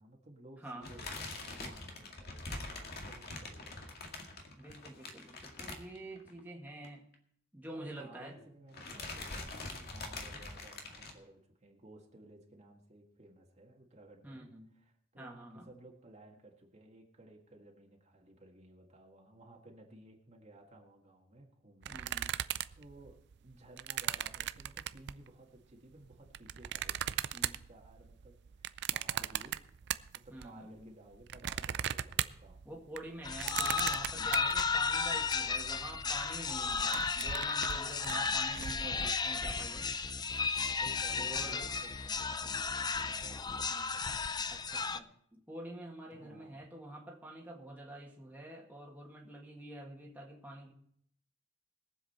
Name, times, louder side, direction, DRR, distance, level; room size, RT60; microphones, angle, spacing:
voice 1, 0.0-3.8 7.7-14.5 14.7-27.0 27.3-32.6 33.5-33.9 38.8-39.2 40.2-40.5 40.8-44.3 46.1-46.7, right 1 dB, 35° right, 0 dB, 1.8 m, -56 dB
sound 1, 0.8-6.4 6.7-6.9 7.1-7.2 8.2-8.5 8.7-11.1, left 2 dB, 55° left, 2.0 m, -44 dB
voice 2, 4.6-7.1 7.5-8.3 14.2-14.7 15.2-15.7 21.9-22.3 30.3-30.9 32.7-39.9 41.2-41.6 43.5-44.0 44.5-50.7, right 1 dB, 10° right, -2 dB, 1.9 m, -47 dB
sound 2, 21.8-25.3 25.9-30.5 30.8-35.4 35.7-35.8 36.0-36.3 36.6-38.7, right 11 dB, 60° right, 0.4 m, -38 dB
sound 3, 33.2-45.0, left 5 dB, 20° left, 0.5 m, -34 dB
21.5 x 7.6 x 4.3 m, 0.66 s
head